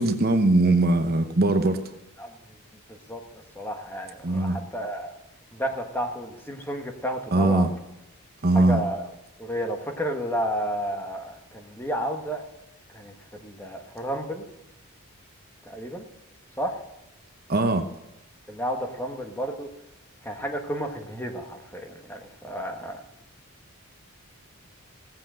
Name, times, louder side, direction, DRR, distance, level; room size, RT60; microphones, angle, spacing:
voice 1, 0.0-1.8 4.2-4.6 7.3-7.7 8.4-8.8 17.5-17.8, right 2 dB, 45° right, 7 dB, 0.9 m, -21 dB
voice 2, 2.9-3.2 3.5-5.2 5.5-7.7 8.5-9.1 9.4-12.4 12.9-14.4 15.6-16.0 16.6-16.8 18.5-19.7 20.2-23.0, equal, 10° left, 4 dB, 1.3 m, -31 dB
17.0 x 7.7 x 7.5 m, 0.90 s
head